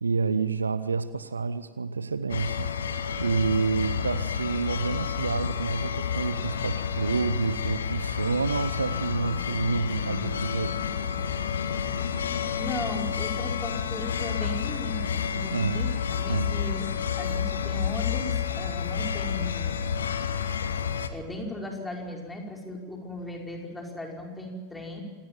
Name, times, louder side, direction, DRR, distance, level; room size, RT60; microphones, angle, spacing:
voice 1, 0.0-10.8 15.5-15.9 16.3-16.6, right 4 dB, 75° right, 0.9 m, -29 dB
sound 1, 2.3-21.1, left 7 dB, 70° left, 1.5 m, -30 dB
voice 2, 12.6-15.0 15.3-16.9 17.2-19.8 21.1-25.0, left 1 dB, 10° left, 5.1 m, -37 dB
26.5 x 19.5 x 7.6 m
figure-of-eight pair, 90°, 0 cm